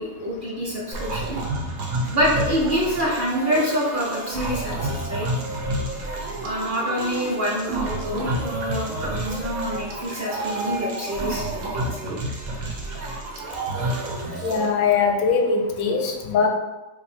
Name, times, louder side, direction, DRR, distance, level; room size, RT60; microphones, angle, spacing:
voice 1, 0.0-1.4 2.1-5.3 6.4-12.2, equal, 50° right, -4 dB, 0.7 m, -26 dB
sound 1, 0.9-14.7, right 2 dB, 90° right, 1.1 m, -29 dB
voice 2, 14.4-16.5, left 5 dB, 85° left, 3 dB, 1.0 m, -21 dB
2.7 x 2.6 x 4.3 m, 1.1 s
omnidirectional pair, 1.4 m